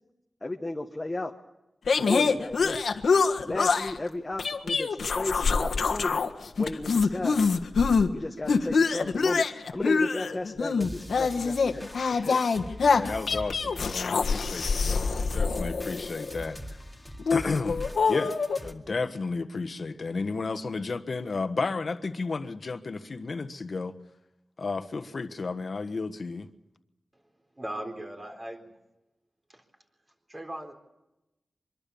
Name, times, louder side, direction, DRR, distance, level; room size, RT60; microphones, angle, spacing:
voice 1, 0.4-1.3 2.1-3.0 3.4-6.2 6.6-7.5 8.1-9.4 9.7-11.8 12.1-12.4, left 2 dB, 20° left, 1 dB, 1.3 m, -34 dB
sound 1, 1.9-4.0 4.4-6.3 6.6-8.1 8.5-16.4 17.2-18.6, left 5 dB, 85° left, 1.5 m, -25 dB
sound 2, 10.8-18.7, equal, 5° right, 2.3 m, -43 dB
voice 2, 12.9-16.6 17.3-23.9 24.6-26.5, left 4 dB, 50° left, 9 dB, 1.3 m, -33 dB
voice 3, 27.5-28.7 29.5-29.6 30.3-30.7, right 1 dB, 25° right, 4 dB, 4.0 m, -38 dB
24.5 x 22.5 x 7.1 m, 0.95 s
wide cardioid pair, 120°, 0 cm